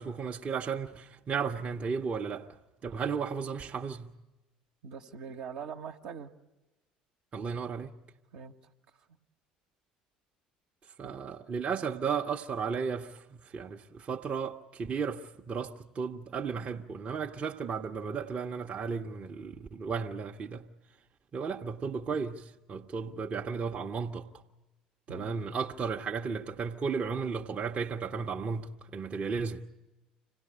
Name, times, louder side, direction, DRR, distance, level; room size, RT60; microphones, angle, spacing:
voice 1, 0.0-2.5 2.8-4.1 7.3-7.9 11.0-20.7 21.3-24.3 25.1-29.6, right 5 dB, 35° right, 0.9 m, -34 dB
voice 2, 4.8-6.3 8.3-8.5 9.0-9.1 11.0-11.2 25.1-25.4, right 6 dB, 60° right, 1.1 m, -42 dB
26.5 x 17.5 x 8.7 m
figure-of-eight pair, 60°, 4 cm